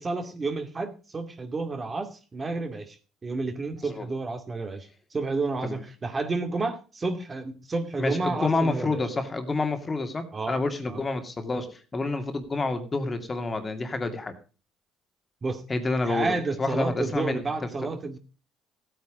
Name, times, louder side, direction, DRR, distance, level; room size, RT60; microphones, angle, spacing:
voice 1, 0.0-3.0 3.2-9.0 10.3-10.6 10.9-11.0 15.4-15.6 16.0-18.2, right 3 dB, 30° right, 7 dB, 2.3 m, -30 dB
voice 2, 8.0-14.3 15.7-17.4, left 3 dB, 25° left, 7 dB, 2.4 m, -28 dB
15.0 x 9.1 x 5.0 m, 0.35 s
supercardioid pair, 90°, 0 cm